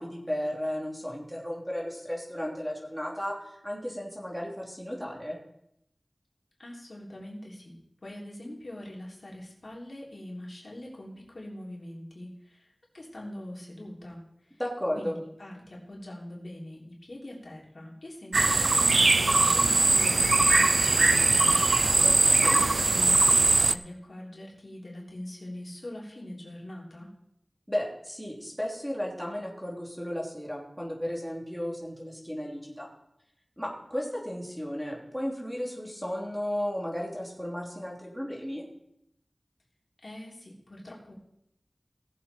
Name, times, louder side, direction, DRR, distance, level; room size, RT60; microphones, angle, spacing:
voice 1, 0.0-5.4 14.6-15.1 22.0-22.6 27.7-32.9 33.6-38.6, equal, ahead, -2 dB, 3.1 m, -34 dB
voice 2, 6.6-7.7 8.0-14.6 14.9-21.7 22.5-27.1 40.0-41.1, left 1 dB, 65° left, -3 dB, 3.3 m, -43 dB
sound 1, 18.3-23.8, right 3 dB, 75° right, 0.4 m, -21 dB
18.0 x 7.6 x 4.4 m, 0.78 s
wide cardioid pair, 55°, 0 cm